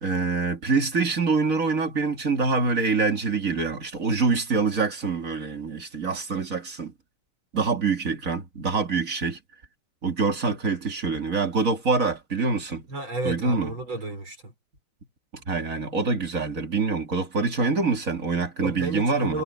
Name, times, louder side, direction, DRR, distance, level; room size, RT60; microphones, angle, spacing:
voice 1, 0.0-6.9 7.5-9.4 10.0-12.9 13.2-13.8 15.3-19.4, right 4 dB, 40° right, 2.8 m, -25 dB
voice 2, 12.9-14.5 18.6-19.4, right 2 dB, 80° right, 7.3 m, -32 dB
omnidirectional pair, 2.2 m